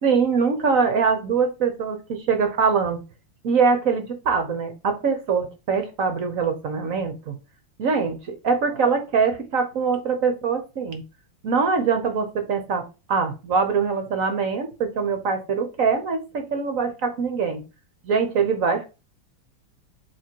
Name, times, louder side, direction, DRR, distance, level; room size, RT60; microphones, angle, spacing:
voice 1, 0.0-3.0 3.4-7.4 7.8-11.0 11.4-17.6 18.0-18.9, right 5 dB, 55° right, 7 dB, 1.1 m, -23 dB
7.9 x 3.0 x 4.5 m, 0.30 s
omnidirectional pair, 2.2 m